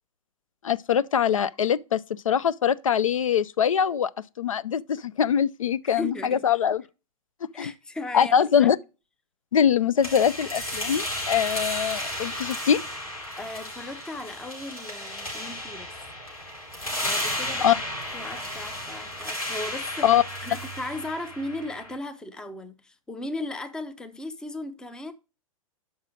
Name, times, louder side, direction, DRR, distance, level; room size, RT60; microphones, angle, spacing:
voice 1, 0.6-4.1 4.4-6.8 7.6-7.7 8.1-8.8 9.5-12.8 17.6-17.8 20.0-20.2, left 8 dB, 70° left, 0.4 m, -23 dB
voice 2, 5.8-6.5 7.5-8.7 13.4-15.9 17.0-17.8 18.1-20.2 20.4-25.1, left 2 dB, 5° left, 0.5 m, -36 dB
sound 1, 10.0-21.9, left 1 dB, 85° left, 4.9 m, -33 dB
5.8 x 5.5 x 6.2 m
figure-of-eight pair, 105°, 18 cm